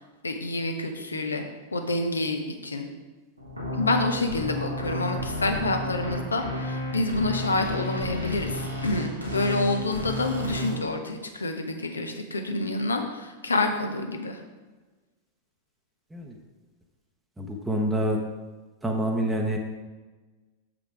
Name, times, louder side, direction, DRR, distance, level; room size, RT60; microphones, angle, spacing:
voice 1, 0.0-1.4 1.7-2.9 3.7-14.4, left 2 dB, 75° left, 5 dB, 0.8 m, -28 dB
sound 1, 3.4-10.7, left 1 dB, 90° right, 1.4 m, -32 dB
voice 2, 17.4-18.2 18.8-19.6, right 1 dB, 5° right, 0 dB, 0.8 m, -27 dB
7.0 x 5.1 x 4.7 m, 1.3 s
figure-of-eight pair, 90°, 0 cm